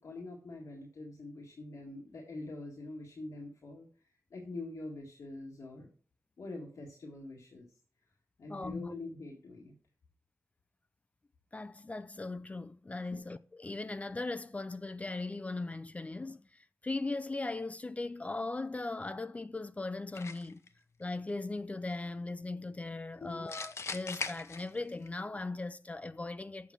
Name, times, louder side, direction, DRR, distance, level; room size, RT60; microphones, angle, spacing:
voice 1, 0.0-3.9 4.3-5.9 6.4-7.7 8.4-9.7 13.1-13.2 23.2-23.5, left 2 dB, 85° left, 1.8 m, -44 dB
voice 2, 8.5-8.9 11.5-16.4 16.8-20.6 21.0-26.7, left 2 dB, 25° left, 0.4 m, -38 dB
sound 1, 20.2-20.7 23.5-25.1, left 4 dB, 60° left, 0.8 m, -40 dB
7.1 x 6.9 x 6.0 m
wide cardioid pair, 100°, 5 cm